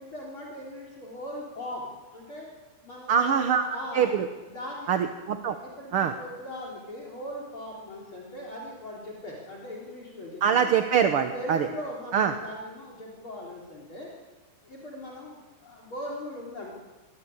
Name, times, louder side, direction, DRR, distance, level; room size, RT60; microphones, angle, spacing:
voice 1, 0.0-2.5 2.8-4.1 4.5-5.1 5.5-10.7 11.3-14.1 14.6-16.8, left 1 dB, 40° left, -1 dB, 4.5 m, -39 dB
voice 2, 3.1-3.6 3.9-4.3 4.9-5.6 5.9-6.1 10.4-11.7 12.1-12.3, right 7 dB, 60° right, 7 dB, 1.7 m, -23 dB
24.5 x 20.0 x 8.8 m, 1.2 s
omnidirectional pair, 3.6 m